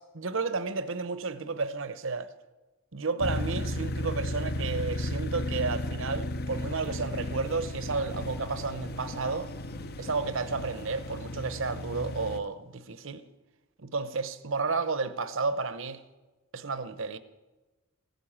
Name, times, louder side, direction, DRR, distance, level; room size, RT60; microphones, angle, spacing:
voice 1, 0.1-2.3 2.9-9.5 10.0-13.2 13.8-16.0 16.5-17.2, right 4 dB, 65° right, 0.9 m, -32 dB
sound 1, 3.2-12.4, left 1 dB, 50° left, 0.8 m, -34 dB
15.5 x 9.3 x 8.7 m
head